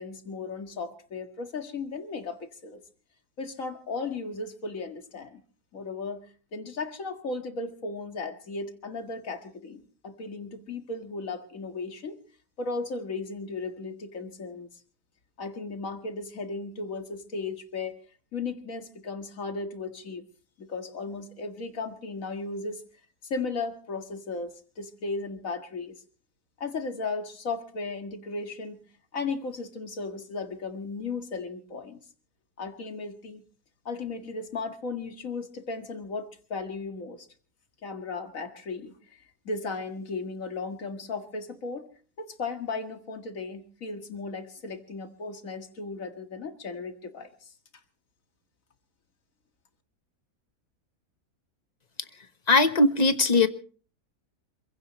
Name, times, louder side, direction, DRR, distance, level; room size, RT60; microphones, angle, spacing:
voice 1, 0.0-2.8 3.4-5.4 5.7-6.3 6.5-12.2 12.6-14.7 15.4-18.0 18.3-20.2 20.6-22.8 23.2-26.0 26.6-28.9 29.1-32.0 32.6-33.4 33.9-37.3 37.8-41.9 42.2-47.5, left 3 dB, 60° left, 7 dB, 2.2 m, -36 dB
voice 2, 52.5-53.5, left 2 dB, 30° left, 10 dB, 1.2 m, -20 dB
27.5 x 16.0 x 3.1 m, 0.40 s
omnidirectional pair, 1.6 m